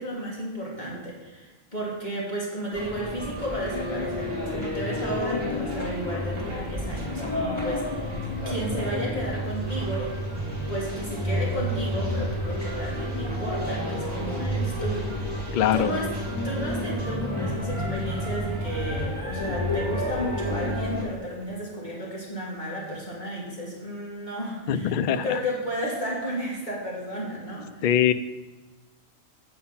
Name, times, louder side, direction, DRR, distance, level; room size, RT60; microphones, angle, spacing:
voice 1, 0.0-8.2 8.5-10.1 10.7-15.1 15.7-16.1 16.4-27.8, equal, 35° left, -5 dB, 2.2 m, -33 dB
sound 1, 2.7-21.0, equal, 20° right, 2.2 m, -30 dB
voice 2, 15.5-15.9 24.7-25.2 27.8-28.1, left 10 dB, 70° left, 11 dB, 0.4 m, -22 dB
8.6 x 5.7 x 5.7 m, 1.2 s
omnidirectional pair, 1.4 m